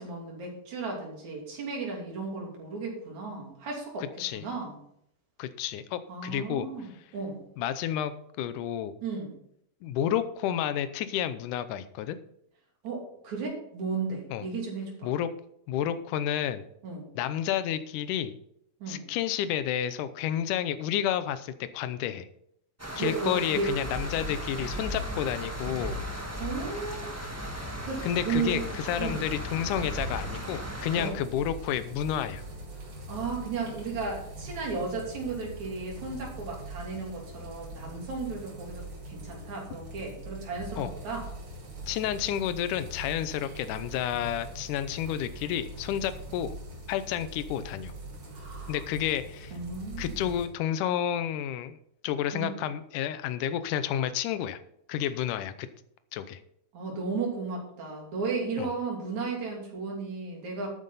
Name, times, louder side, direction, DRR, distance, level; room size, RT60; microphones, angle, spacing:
voice 1, 0.0-4.1 4.3-4.8 6.1-7.4 9.0-9.3 12.8-15.1 16.8-17.1 18.8-19.0 23.0-23.7 26.4-27.1 27.8-28.7 29.0-29.3 31.0-31.2 32.8-41.3 48.3-48.8 49.5-50.2 52.3-52.6 56.7-60.7, right 4 dB, 65° right, -1 dB, 4.3 m, -34 dB
voice 2, 5.4-6.7 7.6-8.9 9.8-12.2 14.3-14.4 15.0-15.3 15.7-16.6 17.2-18.4 18.9-22.3 23.0-26.0 28.0-32.4 40.8-40.9 41.9-46.6 46.9-47.9 48.7-49.5 50.0-51.8 52.0-54.6 54.9-55.7 56.1-56.4 58.6-58.7, left 10 dB, 85° left, 12 dB, 2.3 m, -30 dB
sound 1, 22.8-31.1, equal, 10° right, 0.8 m, -36 dB
sound 2, 31.1-50.5, right 1 dB, 45° right, 3.3 m, -42 dB
12.5 x 9.3 x 4.1 m, 0.72 s
omnidirectional pair, 3.6 m